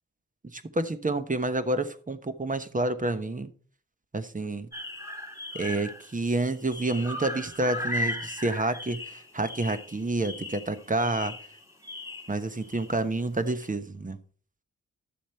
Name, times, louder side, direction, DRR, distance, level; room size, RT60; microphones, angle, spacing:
voice 1, 0.5-3.5 4.1-4.7 5.5-11.3 12.3-14.2, right 2 dB, 25° right, 11 dB, 1.1 m, -29 dB
sound 1, 4.7-6.2 6.5-13.0 13.5-13.7, left 1 dB, 10° right, 3.4 m, -37 dB
11.5 x 7.1 x 4.4 m, 0.43 s
cardioid pair, 55°, 30 cm